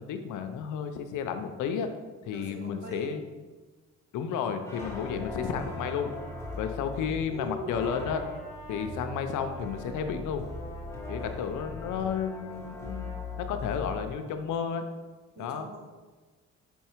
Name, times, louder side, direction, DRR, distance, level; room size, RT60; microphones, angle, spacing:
voice 1, 0.0-1.9 2.2-3.2 4.1-6.1 6.6-8.2 8.7-10.5 11.1-13.1 13.4-14.8 15.4-15.7, left 7 dB, 80° left, 7 dB, 0.7 m, -32 dB
voice 2, 2.2-3.2 7.3-7.8 15.3-15.8, left 1 dB, 35° right, -2 dB, 1.9 m, -41 dB
sound 1, 4.6-14.1, left 2 dB, 10° left, 1.3 m, -39 dB
5.5 x 4.6 x 4.5 m, 1.3 s
cardioid pair, 90°, 30 cm